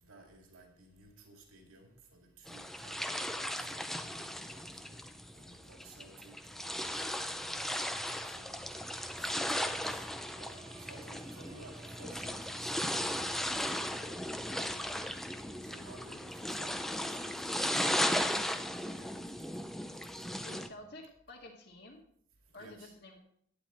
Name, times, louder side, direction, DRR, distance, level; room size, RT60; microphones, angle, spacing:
voice 1, 0.0-5.0 5.3-6.3 6.6-7.7 8.2-8.6 9.2-10.0 10.4-13.2 13.9-17.9 18.8-19.2 20.5-20.9 22.5-22.9, right 2 dB, 90° right, 2 dB, 2.3 m, -56 dB
sound 1, 2.5-20.7, equal, ahead, 0.5 m, -36 dB
sound 2, 6.1-13.9, right 4 dB, 35° right, 0.9 m, -60 dB
voice 2, 20.4-22.0 22.5-23.2, left 2 dB, 50° left, -2 dB, 2.0 m, -50 dB
12.0 x 9.6 x 4.4 m, 0.66 s
head